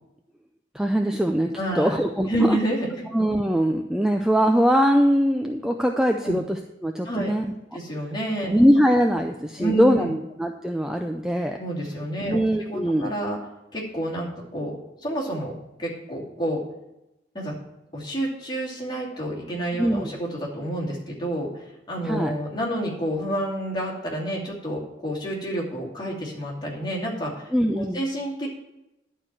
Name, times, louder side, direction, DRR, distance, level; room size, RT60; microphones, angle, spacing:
voice 1, 0.7-2.6 3.1-7.5 8.5-11.6 12.3-13.1 19.8-20.1 22.0-22.3 27.5-28.0, equal, 5° right, 4 dB, 0.4 m, -22 dB
voice 2, 1.6-2.0 2.3-3.0 6.2-6.4 7.0-7.3 7.7-8.6 9.6-10.1 11.6-13.4 13.7-14.8 15.0-15.5 15.8-16.6 17.3-17.5 17.9-27.5 27.8-28.5, right 1 dB, 20° left, -5 dB, 2.5 m, -29 dB
11.0 x 4.5 x 7.5 m, 0.93 s
head